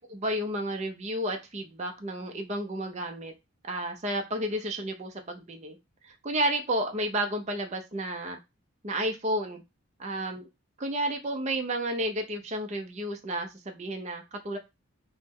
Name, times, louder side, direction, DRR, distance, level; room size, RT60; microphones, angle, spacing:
voice 1, 0.1-3.3 3.6-5.8 6.2-8.4 8.8-9.6 10.0-10.4 10.8-14.6, right 1 dB, 30° right, 4 dB, 0.5 m, -31 dB
3.0 x 2.1 x 3.6 m, 0.23 s
head